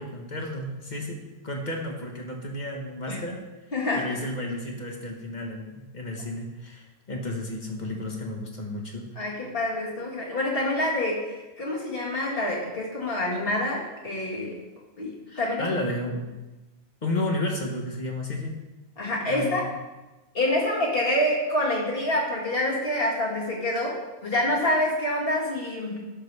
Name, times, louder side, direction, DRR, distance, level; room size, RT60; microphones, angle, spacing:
voice 1, 0.0-3.4 3.9-9.4 15.3-16.3 17.0-18.6 19.3-19.6, left 1 dB, 45° left, 1 dB, 1.4 m, -32 dB
voice 2, 3.7-4.1 9.2-14.6 15.0-15.7 19.0-19.7 20.3-26.0, left 1 dB, 60° left, -3 dB, 2.1 m, -27 dB
11.5 x 6.7 x 3.3 m, 1.1 s
omnidirectional pair, 1.1 m